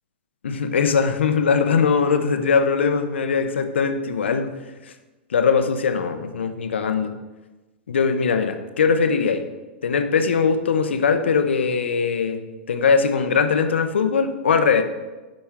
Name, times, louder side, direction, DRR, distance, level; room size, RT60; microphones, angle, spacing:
voice 1, 0.4-4.5 5.3-7.1 7.9-9.4 9.8-12.4 12.7-14.8, left 5 dB, 85° left, 8 dB, 0.7 m, -20 dB
8.9 x 5.3 x 3.6 m, 1.1 s
hypercardioid pair, 110°, 6 cm